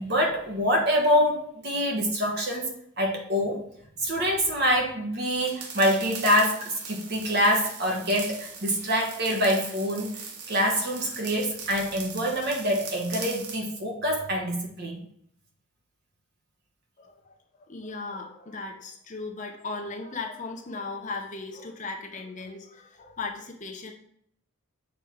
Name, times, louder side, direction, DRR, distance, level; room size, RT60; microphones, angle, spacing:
voice 1, 0.0-3.6 4.0-10.2 10.5-15.0, equal, 45° right, 1 dB, 1.4 m, -25 dB
sound 1, 5.4-13.6, right 5 dB, 80° right, 1.0 m, -40 dB
voice 2, 17.0-17.4 17.7-23.9, left 3 dB, 35° left, 2 dB, 0.8 m, -37 dB
7.1 x 4.4 x 3.6 m, 0.69 s
head